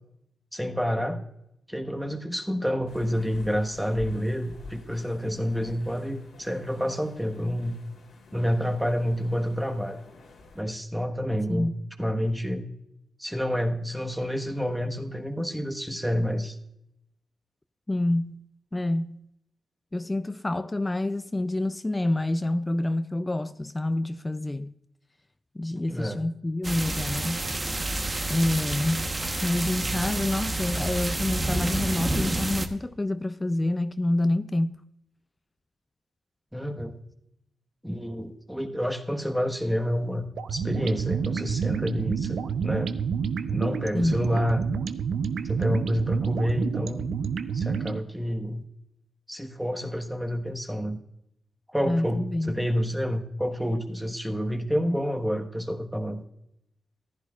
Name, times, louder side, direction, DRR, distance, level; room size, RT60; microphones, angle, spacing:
voice 1, 0.5-1.2 1.7-7.8 8.3-10.0 10.5-11.7 12.0-12.6 13.2-16.6 25.9-26.2 36.5-37.0 37.8-43.0 43.5-44.6 45.5-47.1 47.5-48.6 49.3-51.0 51.7-56.2, equal, 5° right, 1.3 m, -28 dB
sound 1, 2.9-10.6, left 2 dB, 75° left, 2.3 m, -48 dB
voice 2, 11.5-11.9 17.9-18.4 18.7-19.3 19.9-24.7 25.6-27.5 28.3-29.1 29.4-34.8 43.9-44.2 51.8-52.5, left 1 dB, 20° left, 0.4 m, -27 dB
sound 2, 26.6-32.7, right 2 dB, 30° right, 1.0 m, -29 dB
sound 3, 40.4-48.0, right 6 dB, 80° right, 0.6 m, -29 dB
14.5 x 11.0 x 2.4 m
cardioid pair, 70°, 0 cm